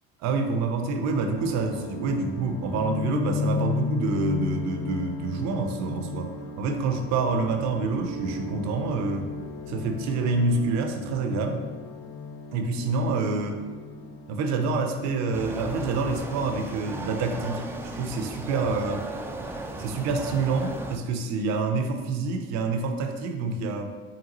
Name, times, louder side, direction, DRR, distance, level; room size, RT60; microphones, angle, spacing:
voice 1, 0.2-6.3 6.6-9.3 9.7-11.6 12.5-13.6 14.3-17.6 17.9-19.1 19.8-23.9, right 3 dB, 70° right, 5 dB, 0.6 m, -27 dB
sound 1, 1.1-19.6 19.9-20.9, left 4 dB, 60° left, 0.6 m, -36 dB
sound 2, 15.3-21.0, right 2 dB, 10° right, 0.3 m, -35 dB
3.9 x 3.6 x 2.9 m, 1.4 s
supercardioid pair, 90°, 29 cm